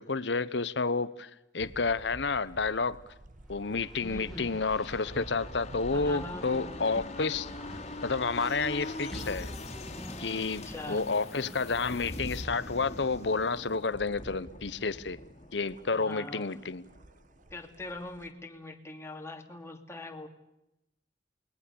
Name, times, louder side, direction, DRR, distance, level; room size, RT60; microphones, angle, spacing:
voice 1, 0.0-3.0 3.5-7.5 8.0-9.5 10.2-15.2 15.5-16.8, left 4 dB, 70° left, 1.0 m, -30 dB
sound 1, 1.6-18.3, right 1 dB, 45° right, 1.3 m, -52 dB
Race car auto racing, 3.4-13.0, left 1 dB, ahead, 4.2 m, -48 dB
voice 2, 4.0-4.5 5.9-6.9 10.3-11.0 15.9-16.6 17.5-20.3, left 2 dB, 15° left, 2.7 m, -42 dB
sound 2, 4.2-17.6 17.9-18.0, left 1 dB, 40° left, 2.8 m, -43 dB
29.0 x 21.0 x 7.0 m
head